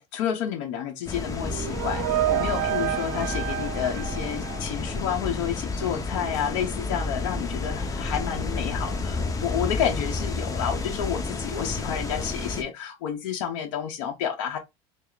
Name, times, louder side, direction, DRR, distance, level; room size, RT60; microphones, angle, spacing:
voice 1, 0.0-14.6, left 9 dB, 75° left, 0.8 m, -30 dB
sound 1, 1.1-12.6, left 3 dB, 20° left, 0.8 m, -31 dB
sound 2, 1.3-5.2, right 13 dB, 70° right, 0.5 m, -29 dB
4.2 x 2.0 x 3.8 m
supercardioid pair, 105°, 16 cm